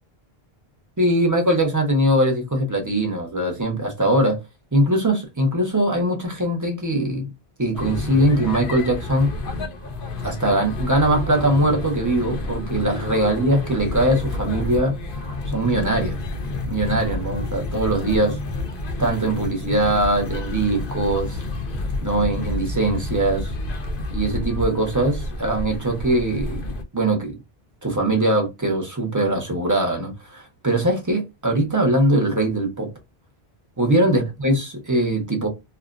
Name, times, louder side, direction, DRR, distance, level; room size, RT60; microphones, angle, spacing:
voice 1, 1.0-4.4 4.7-7.3 7.6-9.3 10.2-15.0 15.5-16.2 16.7-18.4 19.0-21.4 22.0-23.5 24.1-26.6 26.9-27.4 27.8-32.9 33.8-35.5, right 1 dB, 20° right, 0.7 m, -21 dB
sound 1, 7.7-26.8, left 2 dB, 65° left, 0.7 m, -29 dB
2.5 x 2.1 x 2.3 m
omnidirectional pair, 1.0 m